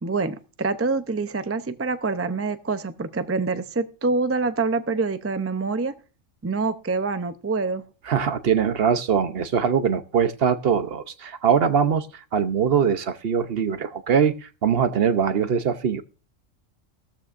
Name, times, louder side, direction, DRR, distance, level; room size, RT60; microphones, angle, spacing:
voice 1, 0.0-5.9 6.4-7.8, right 4 dB, 25° right, 10 dB, 0.3 m, -26 dB
voice 2, 8.1-12.1 12.3-14.3 14.6-16.0, right 7 dB, 55° right, 11 dB, 0.9 m, -22 dB
16.5 x 13.5 x 2.5 m, 0.33 s
omnidirectional pair, 1.3 m